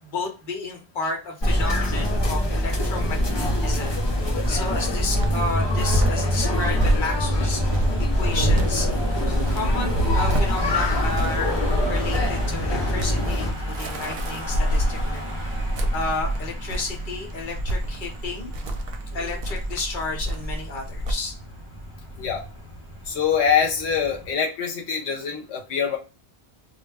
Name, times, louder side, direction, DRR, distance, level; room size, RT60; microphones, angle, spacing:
voice 1, 0.0-7.8 8.1-8.9 9.5-11.5 11.9-15.2 15.9-18.5 19.1-21.3, left 3 dB, 55° left, 1 dB, 1.0 m, -32 dB
sound 1, 1.4-13.5, left 1 dB, 30° left, 0.5 m, -24 dB
Cricket, 3.4-21.1, right 1 dB, 65° right, 0.8 m, -27 dB
Car passing by / Engine, 5.7-24.3, equal, 40° right, 0.5 m, -36 dB
voice 2, 23.1-26.0, left 7 dB, 85° left, 0 dB, 1.0 m, -24 dB
2.3 x 2.1 x 3.3 m, 0.31 s
omnidirectional pair, 1.1 m